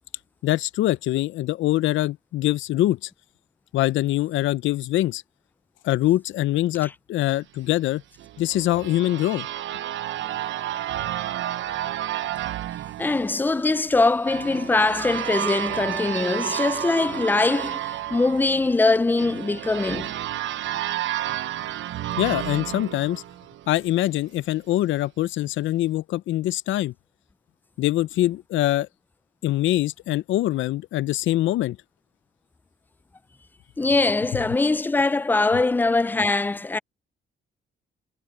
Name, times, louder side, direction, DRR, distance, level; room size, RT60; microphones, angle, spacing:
voice 1, 0.4-3.1 3.7-5.2 5.8-8.0 8.4-9.5 22.2-23.2 23.7-26.9 27.8-28.9 29.4-31.8, left 15 dB, 75° left, 0.5 m, -23 dB
sound 1, 8.2-23.9, right 12 dB, 75° right, 0.8 m, -31 dB
voice 2, 13.0-20.1 33.8-36.8, left 3 dB, 10° left, 0.4 m, -22 dB
cardioid pair, 90°, 20 cm